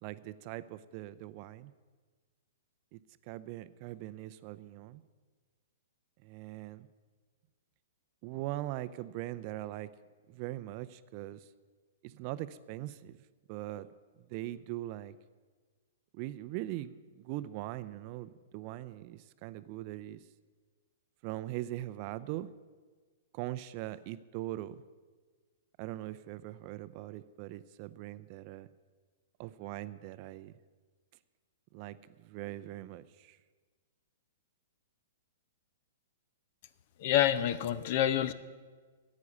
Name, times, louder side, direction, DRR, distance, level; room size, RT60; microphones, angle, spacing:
voice 1, 0.0-1.7 2.9-3.0 3.3-5.0 6.2-6.9 8.2-9.9 10.3-11.4 12.0-13.2 13.5-13.9 14.3-15.1 16.1-20.2 21.2-22.5 23.3-24.8 25.8-28.7 29.4-30.5 31.7-33.4, right 15 dB, 45° right, 15 dB, 0.5 m, -41 dB
voice 2, 37.0-38.3, left 11 dB, 50° left, 15 dB, 0.7 m, -27 dB
10.0 x 8.4 x 9.7 m, 1.4 s
hypercardioid pair, 120°, 0 cm